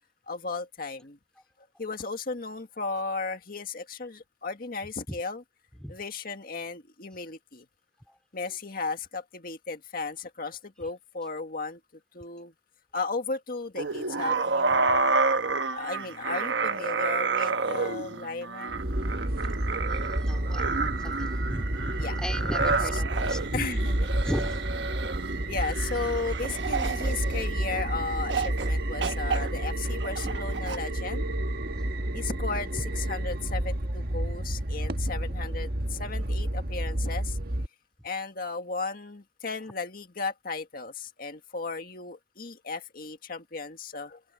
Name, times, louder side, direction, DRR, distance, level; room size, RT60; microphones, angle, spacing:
voice 1, 0.3-1.2 1.8-5.4 5.9-7.7 8.3-11.8 12.1-12.5 12.9-15.2 15.7-18.9 22.0-22.2 23.5-24.0 25.5-31.2 32.1-37.4 38.0-44.2, left 4 dB, 55° left, 1.9 m, -35 dB
sound 1, 13.8-27.8 28.3-28.7 29.0-30.8, right 4 dB, 85° right, 1.2 m, -30 dB
sound 2, 18.7-37.7, right 1 dB, 55° right, 1.6 m, -30 dB
voice 2, 19.9-23.6 24.2-24.7 25.4-25.6 31.8-32.1, equal, 5° left, 3.2 m, -37 dB
open air
head